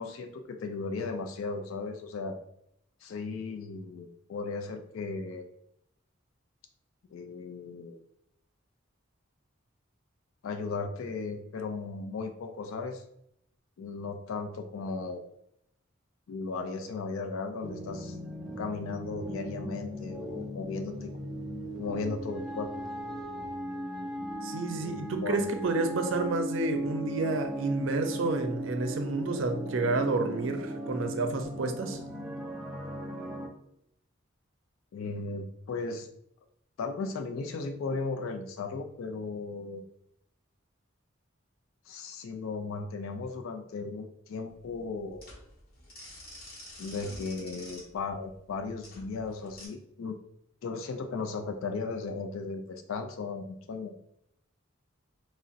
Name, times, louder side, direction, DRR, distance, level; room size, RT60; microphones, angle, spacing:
voice 1, 0.0-2.4 3.0-5.4 7.1-8.0 10.4-13.0 13.8-15.2 16.3-18.2 18.6-21.1 21.8-22.9 24.8-25.4 34.9-36.1 36.8-39.8 41.9-45.2 46.8-50.2 50.6-53.9, left 4 dB, 85° left, 6 dB, 0.4 m, -36 dB
sound 1, 17.6-33.5, right 1 dB, ahead, 0.4 m, -38 dB
voice 2, 24.4-32.0, right 3 dB, 70° right, 6 dB, 0.5 m, -30 dB
sound 2, 44.5-49.7, left 1 dB, 50° left, 0.9 m, -48 dB
2.5 x 2.0 x 3.8 m, 0.75 s
head